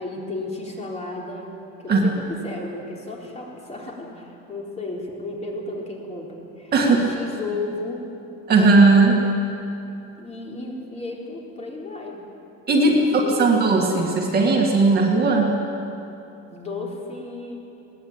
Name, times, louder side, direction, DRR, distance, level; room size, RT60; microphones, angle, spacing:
voice 1, 0.0-1.5 1.8-8.0 10.2-12.2 12.7-13.5 16.5-17.6, left 2 dB, 20° left, -2 dB, 3.9 m, -33 dB
voice 2, 8.5-9.2 12.7-15.5, right 3 dB, 30° right, 0 dB, 2.2 m, -17 dB
21.0 x 18.5 x 8.9 m, 2.8 s
cardioid pair, 165°, 30 cm